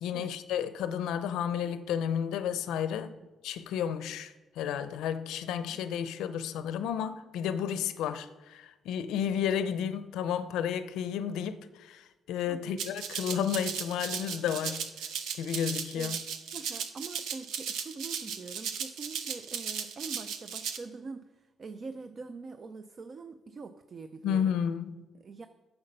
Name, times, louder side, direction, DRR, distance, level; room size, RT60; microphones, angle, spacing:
voice 1, 0.0-3.1 3.4-14.9 15.4-16.2 24.2-25.0, left 8 dB, 90° left, 0.5 m, -32 dB
voice 2, 12.5-12.8 15.9-16.2 16.5-24.5 25.1-25.5, right 4 dB, 45° right, 0.5 m, -44 dB
Rattle (instrument), 12.8-20.8, right 7 dB, 85° right, 0.7 m, -36 dB
9.6 x 6.9 x 5.4 m
cardioid pair, 90°, 0 cm